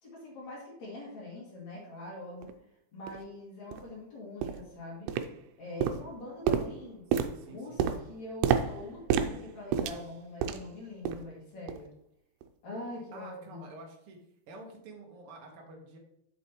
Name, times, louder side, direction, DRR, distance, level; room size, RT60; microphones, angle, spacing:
voice 1, 0.0-2.5 2.9-5.1 5.6-7.0 7.5-11.9 12.6-13.6, left 2 dB, 50° left, -5 dB, 3.2 m, -43 dB
sound 1, 2.4-2.5 3.1-3.2 3.7-3.9 4.4-4.7 5.1-5.5 5.8-10.7 11.0-11.3 11.7-11.9 12.4-12.5, right 8 dB, 85° right, 2.6 m, -31 dB
voice 2, 7.2-7.9 13.1-14.2 14.5-16.0, right 2 dB, 70° right, 0 dB, 1.3 m, -49 dB
8.0 x 6.8 x 3.0 m, 0.73 s
omnidirectional pair, 4.5 m